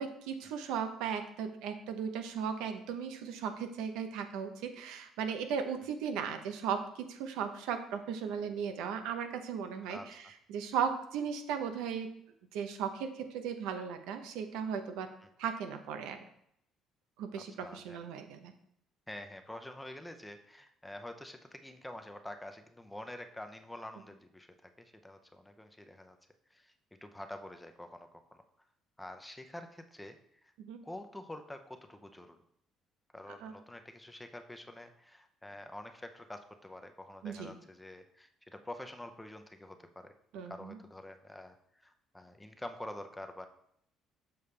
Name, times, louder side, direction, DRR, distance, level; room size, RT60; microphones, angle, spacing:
voice 1, 0.0-12.2 12.5-15.1 15.4-16.3 17.2-18.5 30.7-30.8 33.4-33.5 37.2-37.5 40.3-40.8, right 7 dB, 90° right, 7 dB, 0.8 m, -37 dB
voice 2, 17.3-18.0 19.1-26.2 26.5-26.7 27.0-28.2 29.0-30.5 30.8-32.4 33.1-41.6 41.8-43.5, left 1 dB, 10° left, 6 dB, 0.7 m, -47 dB
6.9 x 5.4 x 3.3 m, 0.73 s
cardioid pair, 105°, 0 cm